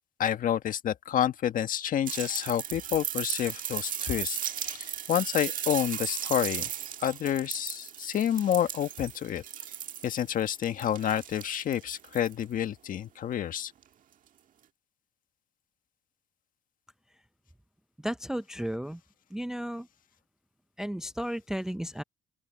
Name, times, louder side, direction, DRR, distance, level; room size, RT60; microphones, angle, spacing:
voice 1, 0.2-4.8 5.1-6.7 7.0-9.4 10.0-13.7, left 10 dB, 55° left, 1.5 m, -29 dB
sound 1, 2.1-12.4 13.8-13.9, right 9 dB, 50° right, 1.7 m, -36 dB
voice 2, 18.0-19.0 19.3-19.9 20.8-22.0, equal, 5° right, 0.4 m, -33 dB
open air
cardioid pair, 110°, 17 cm